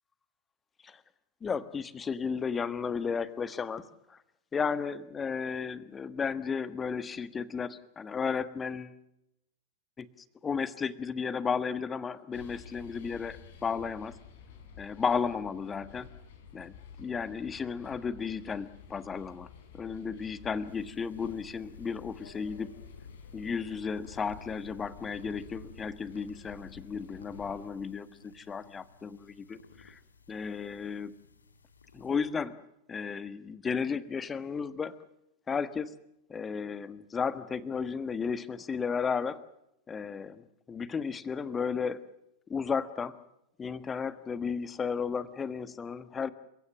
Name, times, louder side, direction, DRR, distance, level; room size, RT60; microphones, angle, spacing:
voice 1, 1.4-4.2 4.5-9.0 10.0-10.1 10.4-14.1 14.8-16.1 16.5-19.5 19.7-22.7 23.3-30.0 30.3-31.1 31.9-32.6 32.9-34.9 35.5-35.9 36.3-39.4 39.9-42.0 42.5-43.2 43.6-46.3, left 6 dB, 20° left, 15 dB, 1.4 m, -34 dB
sound 1, 12.3-27.7, left 6 dB, 55° left, 5.0 m, -52 dB
sound 2, 20.7-32.3, left 5 dB, 75° left, 1.8 m, -54 dB
30.0 x 17.0 x 7.4 m, 0.83 s
figure-of-eight pair, 90°, 0 cm